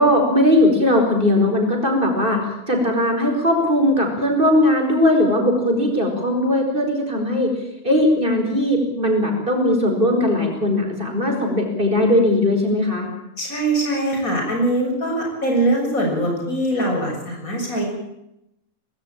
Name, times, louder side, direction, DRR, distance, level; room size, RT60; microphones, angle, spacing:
voice 1, 0.0-7.5 7.8-13.1, left 1 dB, 40° right, 3 dB, 5.2 m, -19 dB
voice 2, 13.4-17.9, right 1 dB, 90° left, 0 dB, 7.7 m, -22 dB
19.5 x 17.5 x 9.0 m, 0.83 s
omnidirectional pair, 1.4 m